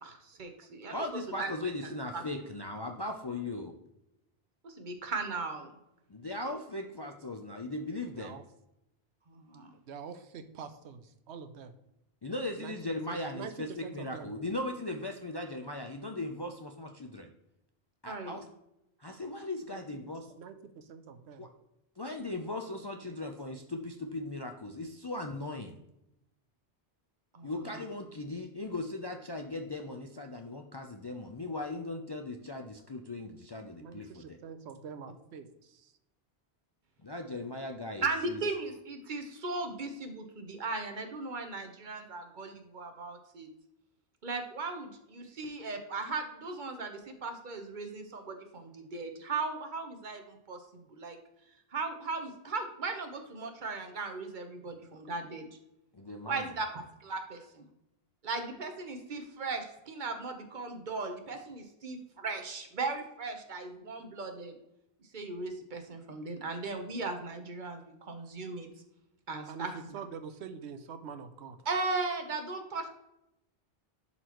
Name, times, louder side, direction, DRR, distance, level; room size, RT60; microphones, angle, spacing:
voice 1, 0.0-1.7 2.1-2.2 4.6-5.7 9.3-9.7 18.1-18.4 27.3-27.8 38.0-43.5 44.2-51.2 51.7-55.5 56.3-56.7 57.0-57.6 58.2-64.5 65.1-68.7 69.3-69.9 71.6-72.9, right 3 dB, 50° right, 5 dB, 1.1 m, -37 dB
voice 2, 0.9-3.7 6.1-8.4 12.2-17.3 18.0-18.5 19.0-20.2 21.4-21.5 22.0-25.8 27.4-34.4 37.0-38.4 55.9-56.4, left 2 dB, 35° left, 4 dB, 0.4 m, -38 dB
voice 3, 9.9-11.7 12.6-12.7 13.1-14.3 19.7-19.8 20.4-21.5 23.1-23.2 33.8-35.9 69.5-71.6, right 6 dB, 85° right, 9 dB, 1.0 m, -45 dB
11.0 x 4.2 x 3.0 m, 0.86 s
omnidirectional pair, 1.1 m